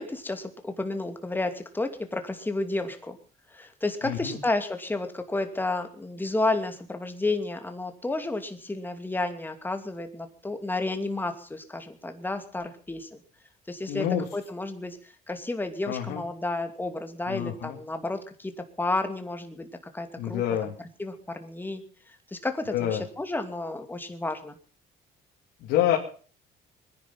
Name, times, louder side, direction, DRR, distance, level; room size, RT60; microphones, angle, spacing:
voice 1, 0.0-3.2 3.5-13.2 13.7-14.1 14.3-15.0 15.3-18.5 18.8-19.7 19.9-20.7 21.0-21.8 22.1-24.6, left 2 dB, 10° left, 7 dB, 2.6 m, -31 dB
voice 2, 4.0-4.4 13.9-14.2 15.8-16.2 17.3-17.8 20.2-20.7 22.7-23.0 25.6-26.0, left 11 dB, 90° left, 0 dB, 2.7 m, -27 dB
22.0 x 10.5 x 5.7 m, 0.42 s
cardioid pair, 110°, 17 cm